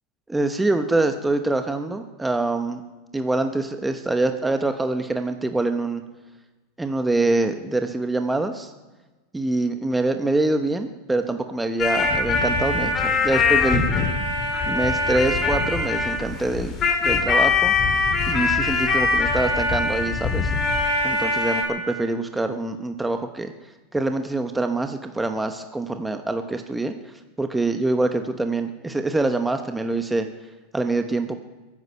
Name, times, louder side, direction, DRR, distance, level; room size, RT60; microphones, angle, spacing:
voice 1, 0.3-2.8 3.1-6.0 6.8-8.7 9.3-13.8 14.7-16.7 17.0-17.7 18.3-20.5 21.0-23.5 23.9-30.3 30.7-31.4, right 2 dB, 10° right, 7 dB, 0.9 m, -25 dB
sound 1, 11.8-21.6, left 3 dB, 35° left, 2.8 m, -22 dB
22.5 x 9.7 x 5.6 m, 1.2 s
supercardioid pair, 125°, 0 cm